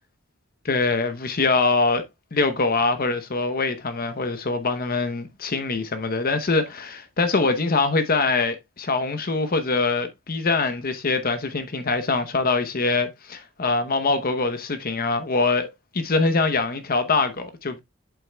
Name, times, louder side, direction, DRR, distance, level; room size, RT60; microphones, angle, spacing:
voice 1, 0.6-2.0 2.3-17.8, left 3 dB, 45° left, 0.8 m, -23 dB
8.2 x 7.6 x 2.2 m
head